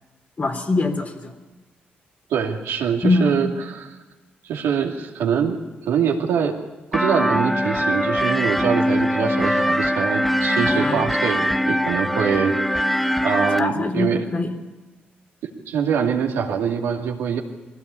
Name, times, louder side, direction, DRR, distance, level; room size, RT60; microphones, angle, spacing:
voice 1, 0.4-1.3 3.0-3.5 10.6-11.1 13.6-14.5, left 2 dB, 40° left, 3 dB, 3.4 m, -23 dB
voice 2, 2.3-3.9 4.4-5.6 5.9-6.6 6.9-12.9 13.2-14.2 15.4-17.4, right 7 dB, 85° right, 0 dB, 2.6 m, -24 dB
sound 1, 6.9-13.6, equal, 5° left, 1.0 m, -22 dB
20.5 x 16.5 x 8.4 m, 1.1 s
supercardioid pair, 55°, 4 cm